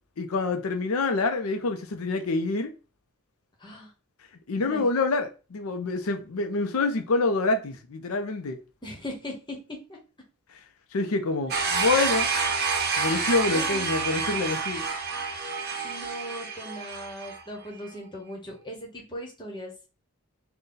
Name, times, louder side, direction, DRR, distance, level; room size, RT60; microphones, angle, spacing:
voice 1, 0.2-2.7 4.5-8.6 10.9-12.3 13.0-14.8, left 3 dB, 80° left, 0.6 m, -26 dB
voice 2, 3.6-3.9 4.6-4.8 8.8-9.6 9.9-10.0 13.4-13.9 15.8-19.7, equal, 20° left, 1.0 m, -39 dB
sound 1, 11.5-17.4, right 5 dB, 50° right, 0.7 m, -28 dB
3.9 x 2.2 x 3.8 m
head